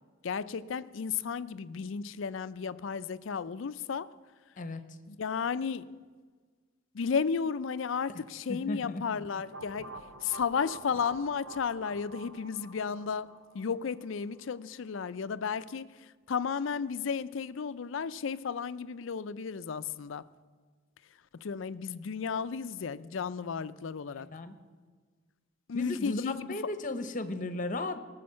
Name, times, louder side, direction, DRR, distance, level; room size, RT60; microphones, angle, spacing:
voice 1, 0.2-4.1 5.1-6.0 6.9-20.3 21.3-24.3 25.7-26.7, left 6 dB, 70° left, 0.4 m, -34 dB
voice 2, 8.5-9.0 24.2-24.5 25.7-28.0, left 2 dB, 40° left, 0.9 m, -35 dB
sound 1, 9.5-14.3, right 2 dB, 75° right, 1.1 m, -47 dB
18.0 x 6.4 x 7.5 m
head